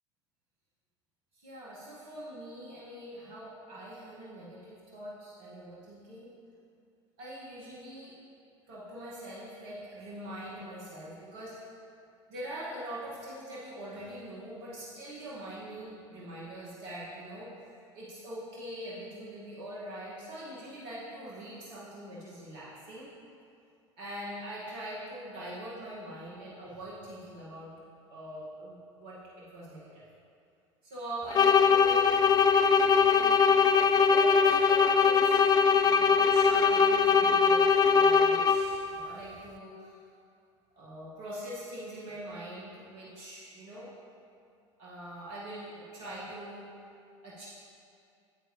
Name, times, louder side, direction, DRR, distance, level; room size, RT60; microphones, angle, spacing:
voice 1, 1.3-6.3 7.2-8.2 8.7-11.6 12.3-17.5 17.9-23.1 24.0-27.7 28.1-30.0 30.8-32.1 33.0-33.4 34.0-35.5 35.8-40.0 40.8-43.9 44.8-46.7 47.2-47.5, right 1 dB, 60° right, -8 dB, 2.1 m, -43 dB
sound 1, 31.3-38.8, left 5 dB, 25° left, 0.4 m, -22 dB
9.1 x 8.5 x 3.3 m, 2.4 s
figure-of-eight pair, 75°, 16 cm